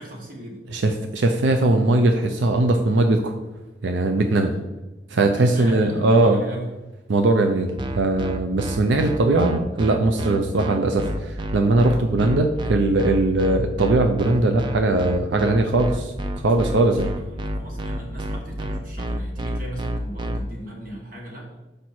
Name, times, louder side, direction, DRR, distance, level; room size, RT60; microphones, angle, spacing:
voice 1, 0.0-0.7 4.3-4.6 5.4-6.8 16.9-17.1 17.6-21.5, right 1 dB, 50° right, -1 dB, 1.6 m, -37 dB
voice 2, 0.7-3.3 3.8-4.5 5.1-6.4 7.1-16.1 16.4-17.1, right 2 dB, 90° right, 5 dB, 0.5 m, -20 dB
sound 1, 7.8-20.4, right 1 dB, 25° right, 0.4 m, -29 dB
6.2 x 5.1 x 4.3 m, 1.1 s
head